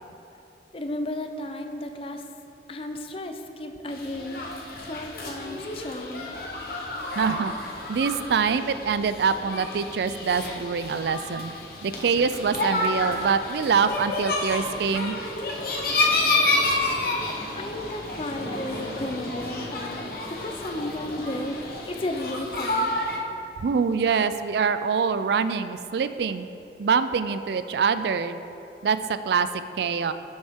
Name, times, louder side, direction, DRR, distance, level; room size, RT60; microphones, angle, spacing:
voice 1, 0.7-2.2 2.7-4.5 4.8-6.3 17.5-23.1, left 1 dB, 30° left, 5 dB, 0.5 m, -34 dB
sound 1, 3.9-23.2, left 2 dB, 55° left, 1.0 m, -30 dB
voice 2, 7.2-7.5 7.9-11.5 11.8-15.2 23.6-26.5 26.8-28.4 28.8-29.0 29.2-29.5 29.8-30.1, right 6 dB, 65° right, 12 dB, 0.3 m, -24 dB
sound 2, 14.5-22.4, equal, 40° right, 1.4 m, -41 dB
10.5 x 6.3 x 3.6 m, 2.9 s
head